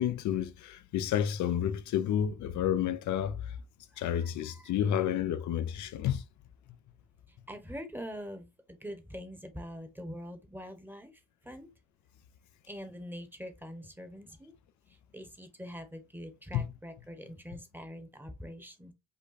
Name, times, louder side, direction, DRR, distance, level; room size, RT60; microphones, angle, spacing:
voice 1, 0.0-3.6 4.0-6.2 16.5-16.7, left 10 dB, 70° left, 0.6 m, -30 dB
voice 2, 3.9-4.7 7.3-11.1 11.4-11.7 12.7-14.5 14.9-18.9, equal, 5° right, 1.1 m, -44 dB
5.3 x 2.2 x 4.0 m
cardioid pair, 90°, 30 cm